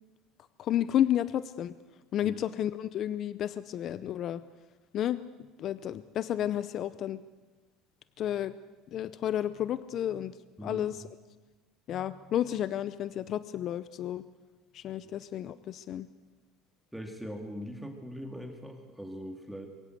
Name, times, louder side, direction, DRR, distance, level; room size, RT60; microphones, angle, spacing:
voice 1, 0.6-1.7 2.1-4.4 4.9-5.2 5.6-7.2 8.2-8.5 8.9-10.3 10.6-11.0 11.9-14.2 14.7-16.1, left 11 dB, 50° left, 15 dB, 0.7 m, -31 dB
voice 2, 16.9-19.7, equal, ahead, 3 dB, 2.3 m, -41 dB
22.5 x 16.5 x 7.9 m, 1.3 s
supercardioid pair, 115°, 0 cm